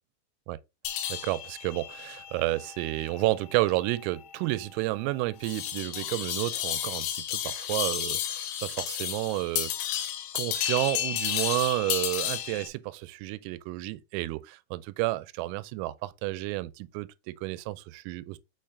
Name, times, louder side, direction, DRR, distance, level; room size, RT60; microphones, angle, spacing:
sound 1, 0.9-12.7, left 11 dB, 85° left, 3.3 m, -33 dB
voice 1, 1.1-9.7 10.3-18.4, right 19 dB, 85° right, 3.2 m, -31 dB
6.6 x 5.9 x 2.6 m
omnidirectional pair, 6.0 m